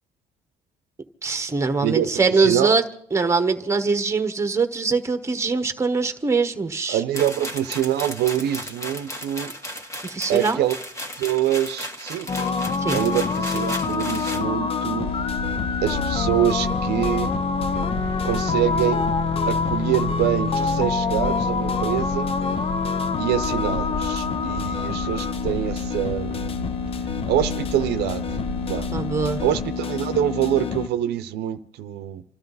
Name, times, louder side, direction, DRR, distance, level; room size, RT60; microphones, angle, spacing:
voice 1, 1.2-2.8 3.1-7.0 10.0-10.6 12.8-13.0 28.9-29.4, right 4 dB, 15° right, 1.2 m, -22 dB
voice 2, 1.8-2.8 6.9-9.5 10.3-10.8 11.2-12.3 12.9-15.1 15.8-17.3 18.2-19.0 19.4-22.3 23.2-26.6 27.3-28.3 28.7-28.9 29.4-32.2, right 11 dB, 75° right, 0.7 m, -25 dB
sound 1, 7.1-14.4, equal, 15° left, 1.6 m, -35 dB
sound 2, 12.3-30.9, left 5 dB, 35° left, 0.6 m, -26 dB
sound 3, 15.0-29.7, left 1 dB, 75° left, 4.6 m, -33 dB
28.0 x 12.5 x 4.0 m
cardioid pair, 110°, 17 cm